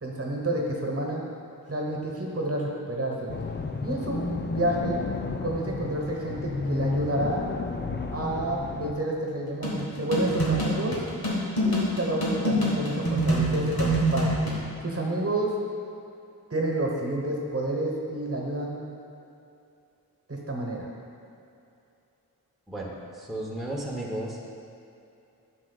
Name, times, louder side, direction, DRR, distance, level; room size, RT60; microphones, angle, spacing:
voice 1, 0.0-1.2 1.7-3.3 3.8-5.0 5.4-7.5 8.1-11.0 11.6-14.4 14.8-15.5 16.5-18.8 20.3-20.9, right 1 dB, 40° right, -1 dB, 1.2 m, -29 dB
sound 1, 3.3-8.9, left 4 dB, 30° left, 0.4 m, -32 dB
sound 2, 9.6-14.6, right 1 dB, 70° left, 1.6 m, -26 dB
voice 2, 22.7-24.5, right 1 dB, ahead, -4 dB, 0.9 m, -34 dB
9.5 x 6.2 x 2.3 m, 2.7 s
wide cardioid pair, 65°, 38 cm